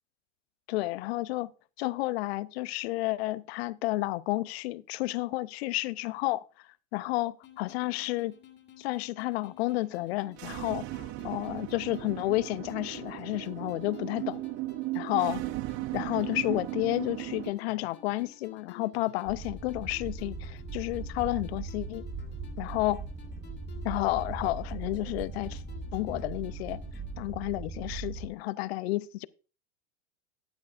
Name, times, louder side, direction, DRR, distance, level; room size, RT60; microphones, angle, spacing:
voice 1, 0.7-1.5 1.8-6.4 6.9-8.4 8.8-14.4 14.9-15.4 15.9-22.0 22.6-23.0 23.8-25.6 25.9-26.8 27.2-29.3, left 18 dB, 55° left, 0.6 m, -31 dB
sound 1, 7.4-27.1, left 5 dB, 30° left, 2.2 m, -53 dB
sound 2, 10.3-17.5, right 18 dB, 35° right, 0.4 m, -36 dB
sound 3, 19.3-28.3, right 4 dB, 10° right, 0.8 m, -39 dB
13.0 x 9.4 x 2.4 m
hypercardioid pair, 95°, 37 cm